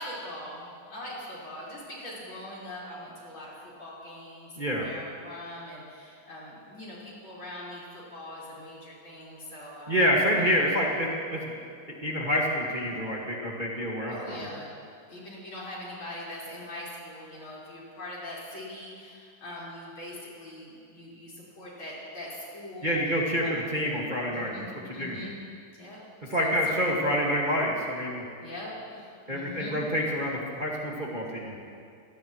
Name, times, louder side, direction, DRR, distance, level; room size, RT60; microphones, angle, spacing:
voice 1, 0.0-10.0 10.3-10.4 14.1-14.7 15.1-23.0 23.4-23.6 24.3-25.4 25.8-26.0 26.4-26.5 28.4-29.8, left 1 dB, 65° left, -6 dB, 5.7 m, -42 dB
voice 2, 4.6-4.9 9.9-11.5 12.0-14.5 22.8-25.2 26.3-28.2 29.3-31.6, equal, 20° right, -4 dB, 1.9 m, -27 dB
25.5 x 17.5 x 3.2 m, 2.3 s
omnidirectional pair, 2.4 m